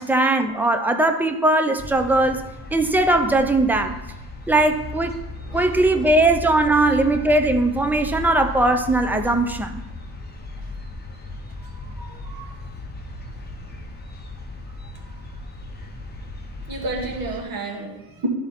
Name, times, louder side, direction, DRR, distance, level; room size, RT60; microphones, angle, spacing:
voice 1, 0.0-4.0 4.5-5.2 5.5-9.8, right 2 dB, 5° right, 5 dB, 0.3 m, -19 dB
sound 1, 1.8-17.4, left 3 dB, 25° left, 0.8 m, -36 dB
voice 2, 5.5-6.0 6.8-6.9 8.0-8.2 9.2-9.3 11.6-12.5 16.7-18.3, right 2 dB, 60° right, 0 dB, 1.7 m, -32 dB
11.5 x 4.3 x 4.0 m, 0.97 s
wide cardioid pair, 180°, 39 cm